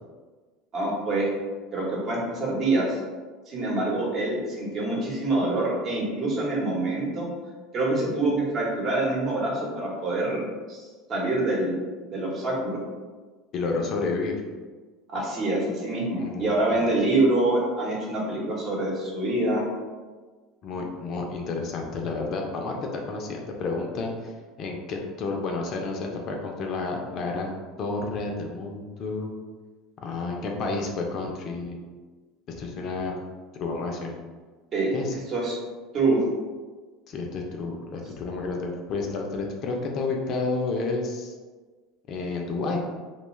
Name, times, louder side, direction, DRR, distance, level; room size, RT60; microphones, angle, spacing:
voice 1, 0.7-1.3 1.7-3.0 3.5-7.3 7.7-10.8 11.1-11.8 12.1-12.8 15.1-19.7 34.7-34.9 35.3-35.5 35.9-36.2, right 2 dB, 45° right, -3 dB, 0.9 m, -25 dB
voice 2, 13.5-14.4 16.2-17.0 20.6-24.3 24.6-27.5 27.8-29.3 30.0-31.8 32.5-33.2 33.6-34.1 34.9-35.2 37.1-41.3 42.1-42.8, left 3 dB, 50° left, 1 dB, 0.5 m, -30 dB
2.3 x 2.2 x 3.1 m, 1.4 s
hypercardioid pair, 90°, 0 cm